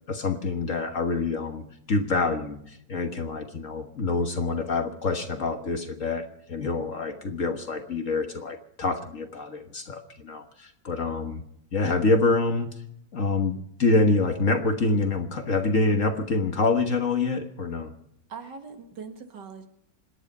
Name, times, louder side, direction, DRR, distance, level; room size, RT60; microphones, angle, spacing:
voice 1, 0.1-11.4 11.7-12.7 13.1-17.9, left 3 dB, 45° left, 6 dB, 1.5 m, -26 dB
voice 2, 18.3-19.7, right 5 dB, 65° right, 6 dB, 2.3 m, -41 dB
26.5 x 10.0 x 5.4 m, 0.73 s
omnidirectional pair, 2.1 m